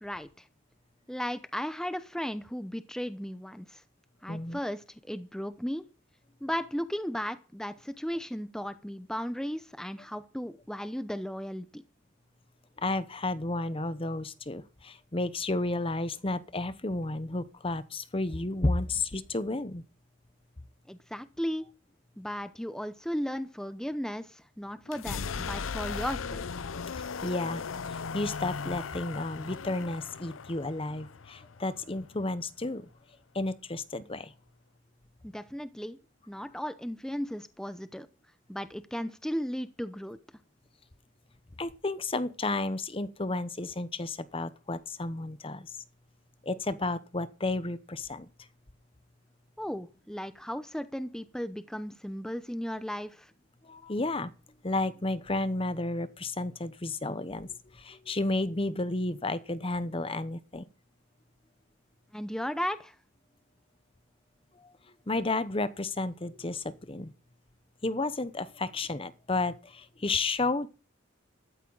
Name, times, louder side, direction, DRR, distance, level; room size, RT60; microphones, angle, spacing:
voice 1, 0.0-0.5 1.1-3.8 4.2-5.8 6.4-11.8 20.9-21.7 22.2-26.6 35.2-36.0 36.3-38.1 38.5-40.2 49.6-53.3 62.1-63.0, equal, 5° left, 0.8 m, -35 dB
voice 2, 4.3-4.6 12.8-19.8 27.0-32.8 33.3-34.3 41.6-45.8 46.4-48.3 53.6-54.3 54.6-60.7 64.6-64.7 65.1-67.1 67.8-70.7, left 2 dB, 30° left, 0.9 m, -32 dB
sound 1, 24.9-32.6, left 5 dB, 85° left, 0.6 m, -37 dB
14.5 x 13.5 x 4.0 m
head